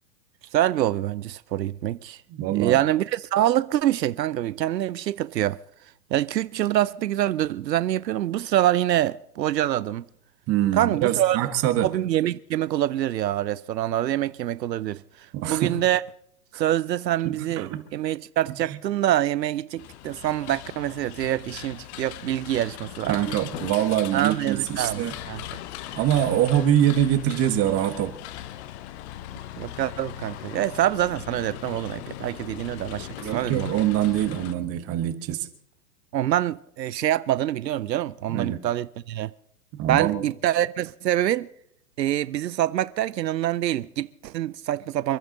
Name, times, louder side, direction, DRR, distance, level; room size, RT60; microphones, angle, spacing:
voice 1, 0.5-2.2 2.5-5.6 6.1-10.0 10.7-11.4 11.8-16.0 16.5-23.2 24.1-25.4 29.6-33.7 36.1-39.3 39.9-41.5 42.0-45.2, right 13 dB, 85° right, 0.7 m, -25 dB
voice 2, 2.3-2.8 10.5-11.9 15.3-15.8 16.5-16.6 17.2-17.8 18.7-18.8 23.1-25.1 25.9-28.1 33.2-35.5 38.3-38.6 39.8-40.2, right 11 dB, 30° right, 1.5 m, -24 dB
sound 1, 19.8-34.5, left 13 dB, 45° left, 1.2 m, -39 dB
28.0 x 11.0 x 3.9 m
hypercardioid pair, 125°, 49 cm